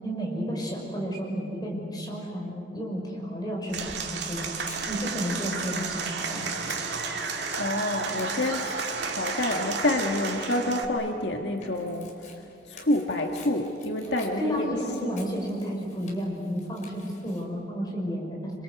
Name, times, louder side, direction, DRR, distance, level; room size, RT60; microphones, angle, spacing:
voice 1, 0.0-4.6 4.9-6.6 14.0-18.5, equal, 25° left, -1 dB, 5.8 m, -32 dB
Applause / Crowd, 3.7-10.8, right 4 dB, 75° right, 2.4 m, -32 dB
Tearing, 3.9-17.4, left 4 dB, 45° left, 4.5 m, -51 dB
voice 2, 7.6-8.6 9.1-14.7 15.0-15.2, left 1 dB, 75° left, 2 dB, 1.7 m, -28 dB
28.0 x 26.0 x 8.2 m, 2.6 s
head